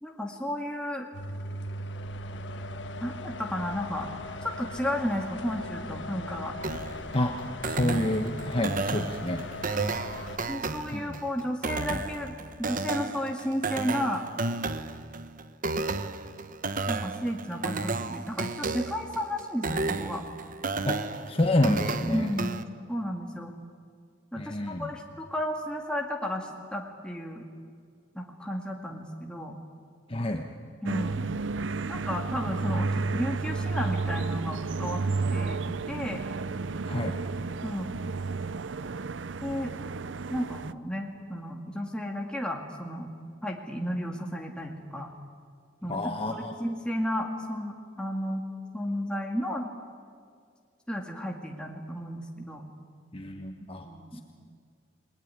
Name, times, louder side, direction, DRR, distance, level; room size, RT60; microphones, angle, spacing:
voice 1, 0.0-1.1 3.0-4.1 4.6-6.5 8.7-8.8 10.5-14.3 16.9-20.2 22.1-22.6 22.9-23.5 24.3-27.4 28.1-29.6 30.8-31.3 31.9-35.0 35.3-36.2 37.6-38.0 39.4-39.7 40.3-43.1 43.4-45.1 45.8-46.0 46.3-48.4 48.7-49.7 50.9-52.6 53.8-54.2, equal, 5° left, 0 dB, 2.1 m, -33 dB
sound 1, 1.1-10.4, left 1 dB, 70° left, 1.8 m, -39 dB
sound 2, 6.6-22.6, right 3 dB, 45° right, 1.1 m, -33 dB
voice 2, 7.6-9.4 10.9-11.2 20.8-21.0 21.3-22.3 24.4-24.9 30.1-30.5 36.9-37.2 45.9-46.5 53.1-53.9 54.1-54.2, left 1 dB, 30° left, 4 dB, 1.4 m, -28 dB
sound 3, 30.9-40.7, right 4 dB, 80° right, 0.6 m, -32 dB
29.5 x 20.5 x 9.8 m, 2.2 s
head